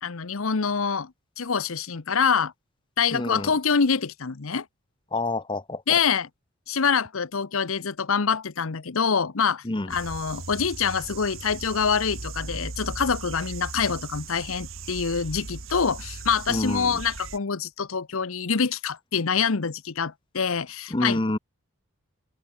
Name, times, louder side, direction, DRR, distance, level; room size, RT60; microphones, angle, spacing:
voice 1, 0.0-1.1 1.4-2.5 3.0-4.6 5.9-6.3 6.7-21.2, left 6 dB, 70° left, 0.9 m, -25 dB
voice 2, 3.1-3.5 5.1-5.8 9.6-9.9 16.5-17.0 20.9-21.4, left 2 dB, 20° left, 0.9 m, -27 dB
sound 1, 9.9-17.4, right 3 dB, 65° right, 2.5 m, -38 dB
open air
head